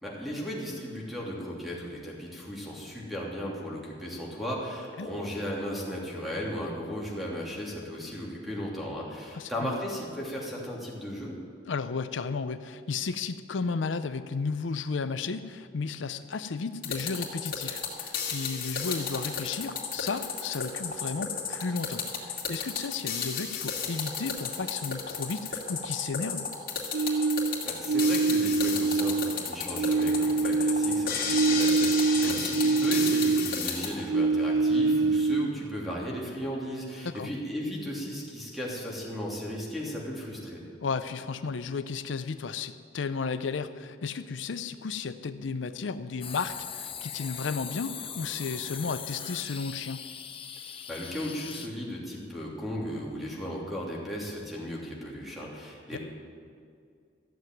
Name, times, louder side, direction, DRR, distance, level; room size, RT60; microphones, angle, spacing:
voice 1, 0.0-11.4 27.6-40.6 50.9-56.0, equal, ahead, -4 dB, 2.9 m, -36 dB
voice 2, 9.3-9.8 11.7-26.5 32.2-32.4 37.0-37.3 40.8-50.0 55.9-56.0, left 4 dB, 80° left, 11 dB, 0.5 m, -34 dB
sound 1, 16.8-33.9, left 6 dB, 50° left, 2.6 m, -33 dB
sound 2, 26.9-29.4 29.7-33.7 34.0-35.7, right 4 dB, 85° right, 0.3 m, -25 dB
sound 3, 46.2-51.7, left 8 dB, 30° left, 0.8 m, -40 dB
14.5 x 7.8 x 9.2 m, 2.2 s
head